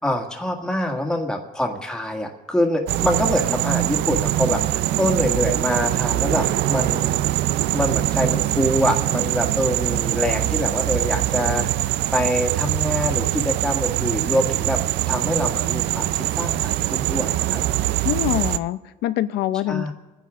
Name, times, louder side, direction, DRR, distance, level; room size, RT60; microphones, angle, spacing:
voice 1, 0.0-7.2 7.7-14.8 15.1-16.1 16.4-17.6 19.7-19.9, equal, 5° left, 1 dB, 1.9 m, -25 dB
sound 1, 2.9-18.6, right 15 dB, 80° right, 0.5 m, -23 dB
voice 2, 18.0-19.9, left 13 dB, 80° left, 13 dB, 0.7 m, -24 dB
28.5 x 10.0 x 3.7 m, 1.1 s
cardioid pair, 110°, 17 cm